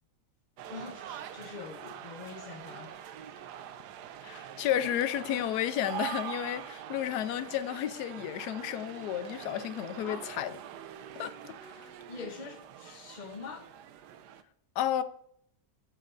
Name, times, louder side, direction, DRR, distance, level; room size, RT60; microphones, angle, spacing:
sound 1, 0.6-14.4, right 10 dB, 90° right, 1.2 m, -44 dB
voice 1, 0.7-3.2 10.0-10.3 12.1-13.7, left 5 dB, 40° left, 0.7 m, -44 dB
voice 2, 4.2-10.5 11.2-11.9 14.8-15.0, left 11 dB, 80° left, 1.1 m, -32 dB
14.0 x 6.2 x 2.5 m
omnidirectional pair, 1.7 m